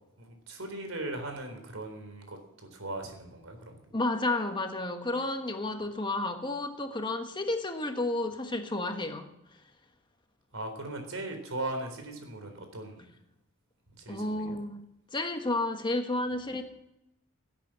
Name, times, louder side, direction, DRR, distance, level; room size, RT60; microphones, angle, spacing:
voice 1, 0.2-3.8 10.5-13.0 13.9-14.6, right 2 dB, 85° right, 5 dB, 4.0 m, -39 dB
voice 2, 3.9-9.3 14.1-14.8 15.1-16.6, left 2 dB, 25° left, 5 dB, 1.4 m, -31 dB
17.5 x 8.6 x 7.7 m, 0.86 s
head